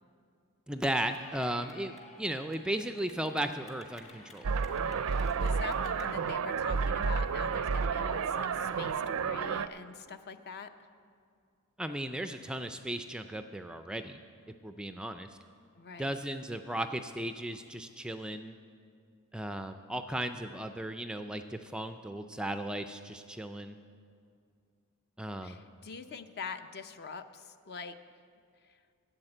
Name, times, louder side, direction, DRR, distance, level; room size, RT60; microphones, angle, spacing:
voice 1, 0.7-4.5 11.8-14.2 14.6-15.3 16.0-18.5 19.3-23.8 25.2-25.6, right 1 dB, 5° right, 8 dB, 0.3 m, -36 dB
Clapping / Cheering, 0.9-6.1, left 2 dB, 30° left, 1.3 m, -54 dB
sound 1, 4.4-9.7, right 5 dB, 65° right, 0.4 m, -31 dB
voice 2, 5.0-10.7 15.7-16.2 25.4-28.0 28.7-28.8, left 5 dB, 50° left, 10 dB, 0.6 m, -44 dB
11.0 x 7.8 x 8.8 m, 2.3 s
head